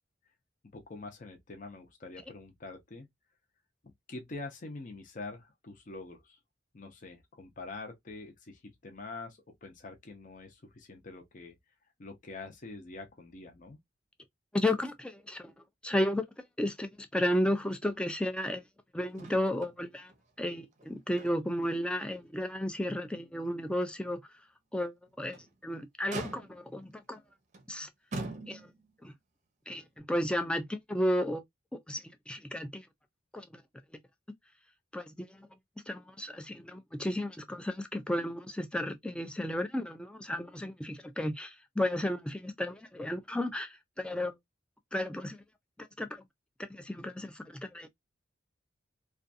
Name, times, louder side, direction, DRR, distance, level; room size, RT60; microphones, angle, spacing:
voice 1, 0.7-3.1 4.1-6.4 6.7-11.6 12.0-13.8, left 3 dB, 45° left, 0.6 m, -45 dB
voice 2, 14.5-15.5 15.8-16.3 16.6-18.6 18.9-20.1 20.4-24.2 24.7-27.2 27.7-27.9 28.5-28.6 29.0-29.1 29.7-31.4 31.9-32.9 33.3-33.5 34.9-35.5 35.9-44.3 44.9-45.4 46.0-46.1 46.6-47.9, left 1 dB, 5° left, 0.3 m, -33 dB
Motor vehicle (road), 19.1-19.8 20.1-20.2 20.7-21.7 22.1-22.2 22.8-22.9 25.1-25.5 26.1-26.8 27.5-27.7 28.1-28.9 30.0-30.1, right 2 dB, 40° right, 0.6 m, -42 dB
2.5 x 2.3 x 2.5 m
head